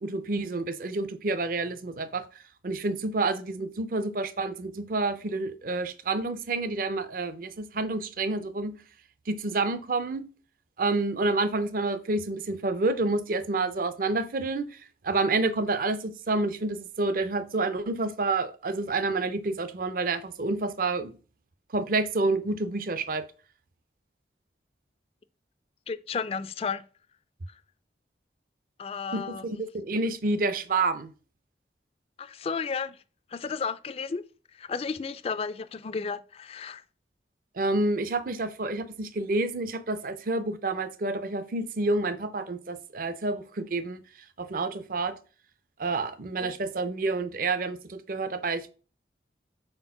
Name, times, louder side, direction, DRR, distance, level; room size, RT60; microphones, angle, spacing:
voice 1, 0.0-2.2 2.6-8.7 9.3-10.3 10.8-21.1 21.7-23.2 29.1-31.1 37.6-44.0 44.4-45.2 45.8-48.7, right 3 dB, 50° right, 0.5 m, -29 dB
voice 2, 25.9-26.8 27.5-27.6 28.8-29.5 32.2-33.0 33.3-34.2 34.5-36.8 46.4-46.6, left 5 dB, 35° left, 0.3 m, -33 dB
4.4 x 4.2 x 5.6 m
head